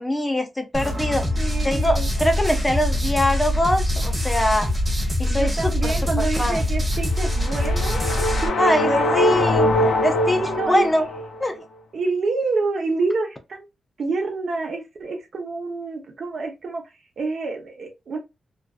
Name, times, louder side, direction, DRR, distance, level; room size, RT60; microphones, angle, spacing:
voice 1, 0.0-1.3 1.6-4.7 5.2-6.6 8.6-10.4 10.7-11.1 11.4-11.6, left 1 dB, 15° left, 0.4 m, -23 dB
sound 1, 0.7-8.5, left 1 dB, 20° right, 1.3 m, -24 dB
voice 2, 1.4-2.1 5.3-8.1 8.4-9.2 10.4-10.9 11.9-13.6 14.0-16.8 17.2-18.2, right 3 dB, 60° right, 0.8 m, -27 dB
sound 2, 7.1-11.4, left 1 dB, 85° left, 0.6 m, -22 dB
2.6 x 2.2 x 2.3 m
cardioid pair, 105°, 0 cm